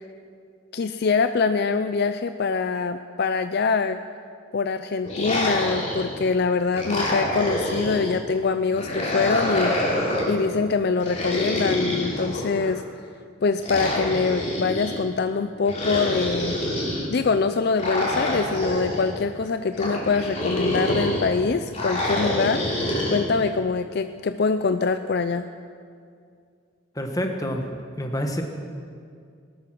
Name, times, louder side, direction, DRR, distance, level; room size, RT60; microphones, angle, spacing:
voice 1, 0.7-4.0 4.5-9.8 10.3-12.8 13.4-16.6 17.1-25.5, left 4 dB, 50° left, 10 dB, 0.4 m, -24 dB
sound 1, 5.0-6.3 6.7-8.2 8.7-10.4 11.0-12.7 13.6-14.9 15.7-17.0 17.8-19.1 19.7-21.3 21.7-23.2, left 1 dB, 35° left, 3.2 m, -26 dB
voice 2, 26.9-27.6 28.0-28.4, equal, 15° left, 4 dB, 1.4 m, -27 dB
19.5 x 12.0 x 6.1 m, 2.3 s
head